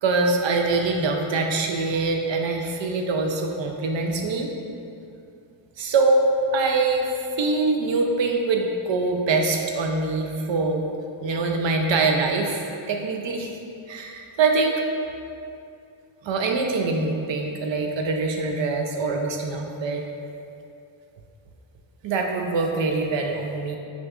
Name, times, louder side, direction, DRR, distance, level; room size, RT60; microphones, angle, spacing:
voice 1, 0.0-4.5 5.8-10.9 11.2-13.5 13.9-14.8 16.2-20.0 22.0-23.8, right 3 dB, 70° right, 2 dB, 0.5 m, -24 dB
6.0 x 2.5 x 2.4 m, 2.6 s
wide cardioid pair, 120°, 47 cm